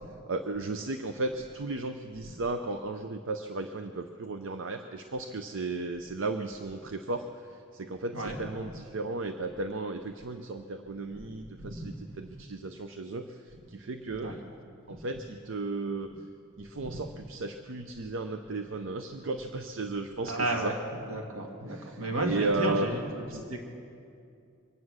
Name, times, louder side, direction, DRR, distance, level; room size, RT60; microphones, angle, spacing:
voice 1, 0.3-14.3 14.9-16.1 16.6-20.7 21.7-22.9 23.3-23.4, right 2 dB, 65° right, 7 dB, 0.6 m, -35 dB
voice 2, 8.1-8.4 11.1-11.3 11.6-11.9 14.2-14.4 14.9-15.0 16.8-17.0 20.2-20.8 21.1-23.6, right 1 dB, 85° right, 1 dB, 1.9 m, -33 dB
24.0 x 9.5 x 6.3 m, 2.5 s
head